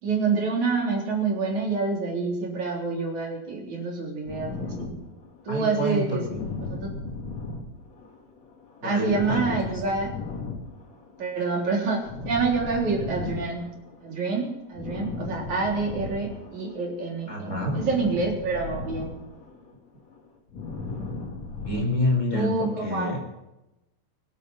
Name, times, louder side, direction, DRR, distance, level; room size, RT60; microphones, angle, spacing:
voice 1, 0.0-4.9 5.4-6.2 6.6-6.9 8.8-10.1 11.2-13.7 14.0-19.2 22.3-23.2, right 4 dB, 60° right, -1 dB, 4.8 m, -27 dB
sound 1, 4.3-16.9 17.2-21.9, left 3 dB, 55° left, 3.8 m, -37 dB
voice 2, 5.5-6.4 8.8-9.8 17.3-17.8 21.6-23.2, left 1 dB, 20° left, 1 dB, 4.4 m, -28 dB
24.0 x 8.9 x 5.6 m, 0.95 s
omnidirectional pair, 3.8 m